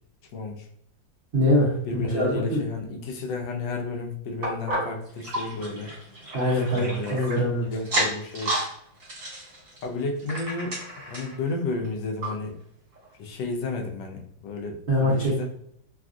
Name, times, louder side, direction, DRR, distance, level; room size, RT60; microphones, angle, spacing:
voice 1, 0.3-0.7 1.9-5.9 6.7-7.2 7.6-8.6 9.8-10.8 11.1-12.6 13.2-15.4, left 3 dB, 80° left, 2 dB, 1.2 m, -32 dB
voice 2, 1.3-1.7 2.1-2.6 6.3-7.6 14.9-15.3, equal, 65° right, -6 dB, 0.5 m, -23 dB
sound 1, 4.4-7.4 7.8-8.7 9.0-11.4 11.8-11.9 12.2-12.3 13.0-13.1, right 1 dB, 45° right, 1.5 m, -31 dB
3.3 x 2.3 x 2.5 m, 0.69 s
omnidirectional pair, 2.0 m